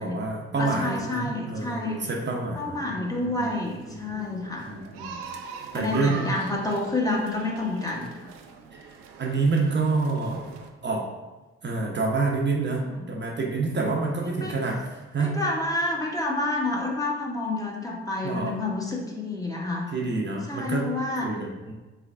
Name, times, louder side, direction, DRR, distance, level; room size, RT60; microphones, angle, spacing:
voice 1, 0.0-3.0 3.4-3.5 3.9-5.2 5.7-6.3 8.7-10.5 10.8-11.1 11.6-15.4 18.2-18.5 19.9-20.9 21.2-21.7, right 3 dB, 35° right, -1 dB, 0.7 m, -28 dB
voice 2, 0.6-2.1 2.5-4.7 5.7-8.3 13.0-13.1 14.3-14.5 15.2-19.9 20.5-21.3, left 2 dB, 10° left, -2 dB, 0.8 m, -29 dB
sound 1, 3.0-10.7, right 5 dB, 75° right, 0.5 m, -42 dB
3.8 x 3.3 x 2.4 m, 1.2 s
hypercardioid pair, 45°, 31 cm